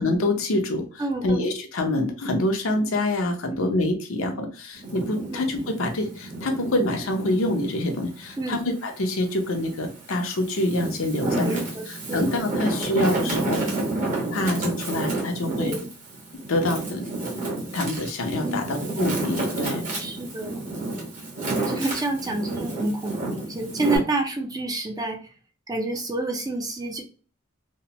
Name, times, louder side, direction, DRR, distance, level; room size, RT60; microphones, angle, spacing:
voice 1, 0.0-11.6 11.9-13.6 14.3-15.7 16.5-17.4 17.7-19.8, left 1 dB, 80° left, 4 dB, 0.7 m, -26 dB
voice 2, 1.0-1.4 3.5-3.7 5.3-5.4 8.4-8.6 11.3-12.3 15.5-15.9 18.4-18.7 20.0-20.6 21.7-25.2 25.7-27.0, right 2 dB, 20° right, 3 dB, 0.5 m, -29 dB
Wind, 4.7-7.6 8.1-9.4 10.0-24.0, right 2 dB, 40° right, 1.1 m, -30 dB
3.0 x 2.1 x 2.9 m, 0.37 s
head